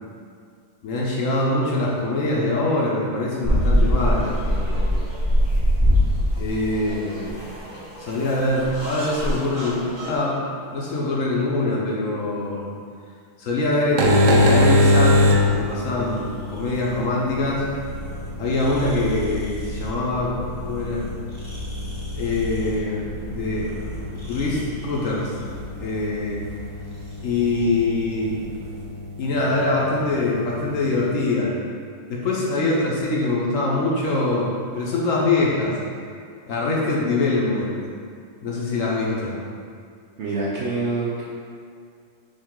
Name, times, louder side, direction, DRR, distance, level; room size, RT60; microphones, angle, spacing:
voice 1, 0.8-5.0 6.4-7.3 8.0-10.4 10.7-12.7 13.4-17.7 18.4-20.4 20.6-21.1 22.1-23.0 23.3-23.7 24.1-25.3 25.8-26.4 27.2-28.4 29.2-31.5 32.1-35.7 36.5-37.7 38.4-39.4, left 2 dB, 65° left, -4 dB, 0.9 m, -24 dB
sound 1, 3.4-10.1, equal, 20° right, 0.8 m, -22 dB
sound 2, 13.8-31.1, left 1 dB, 90° right, 1.1 m, -25 dB
sound 3, 14.4-28.9, equal, 30° left, 0.6 m, -37 dB
voice 2, 40.2-41.2, right 3 dB, 65° right, -6 dB, 0.7 m, -25 dB
5.3 x 2.4 x 3.6 m, 2.2 s
omnidirectional pair, 1.6 m